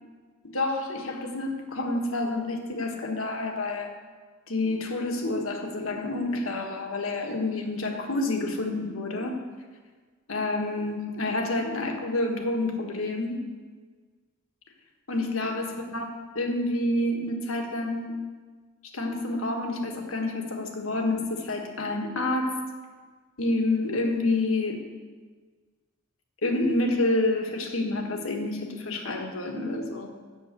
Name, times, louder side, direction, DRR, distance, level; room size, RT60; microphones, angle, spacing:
voice 1, 0.5-3.9 4.5-9.4 10.3-13.4 15.1-16.0 16.4-18.3 18.9-22.6 23.4-24.8 26.4-30.1, left 2 dB, 80° left, 3 dB, 1.5 m, -28 dB
7.9 x 7.1 x 8.2 m, 1.5 s
head